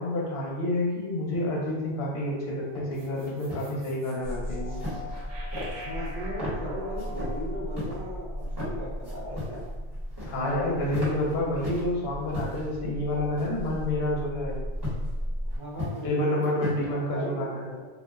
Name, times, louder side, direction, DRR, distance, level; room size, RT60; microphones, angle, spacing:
voice 1, 0.0-4.8 10.3-14.6 16.0-17.7, left 1 dB, 70° left, -4 dB, 0.9 m, -29 dB
sound 1, 2.7-2.9 3.3-3.7 4.7-5.2 5.5-6.1 6.4-6.6 7.0-7.3 7.7-8.0 8.4-8.7 9.0-9.7 9.9-10.5 10.8-11.9 12.3-12.7 13.4-13.8 14.8-15.1 15.5-16.1 16.4-16.9, left 1 dB, 25° right, 0.9 m, -36 dB
sound 2, 2.9-9.3, left 2 dB, 75° right, 0.9 m, -44 dB
sound 3, 4.2-15.6, equal, 25° left, 0.5 m, -36 dB
voice 2, 5.8-9.7 15.5-17.9, equal, 55° right, -6 dB, 0.6 m, -38 dB
2.4 x 2.0 x 3.5 m, 1.3 s
omnidirectional pair, 1.2 m